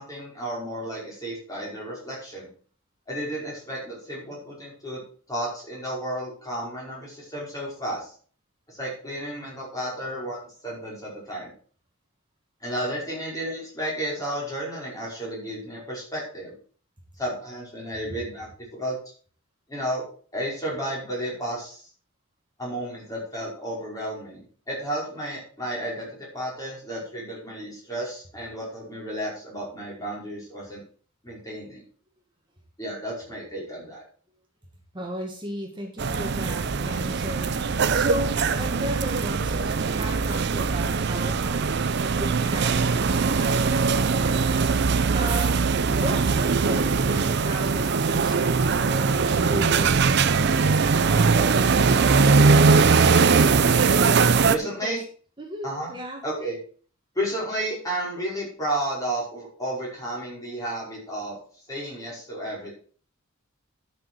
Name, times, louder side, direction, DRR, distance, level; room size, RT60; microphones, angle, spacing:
voice 1, 0.0-2.5 3.1-5.0 5.3-8.1 8.7-11.5 12.6-16.6 17.2-19.0 19.7-20.0 20.3-21.9 22.6-30.8 31.2-31.8 32.8-34.0 54.5-55.0 55.6-55.9 56.2-56.6 57.1-61.4 61.7-62.7, right 1 dB, 15° left, -5 dB, 5.2 m, -32 dB
voice 2, 34.9-37.6 37.9-44.7 45.1-45.6 45.9-52.3 54.6-55.0 55.4-56.2, equal, 20° right, 1 dB, 1.8 m, -35 dB
sound 1, 36.0-54.6, right 4 dB, 55° right, 0.5 m, -21 dB
12.0 x 6.4 x 4.6 m, 0.43 s
head